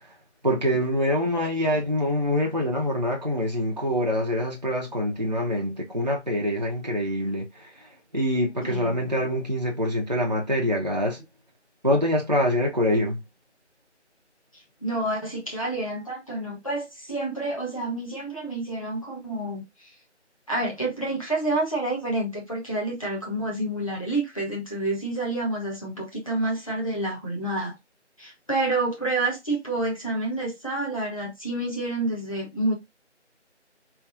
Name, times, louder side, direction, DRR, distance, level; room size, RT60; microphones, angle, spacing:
voice 1, 0.4-7.5 8.1-11.2 11.8-13.2, equal, 40° right, 0.5 m, -25 dB
voice 2, 8.6-8.9 14.8-19.6 20.5-27.7 28.2-32.7, right 2 dB, 30° left, 0.9 m, -28 dB
3.3 x 2.6 x 2.4 m
figure-of-eight pair, 170°, 35 cm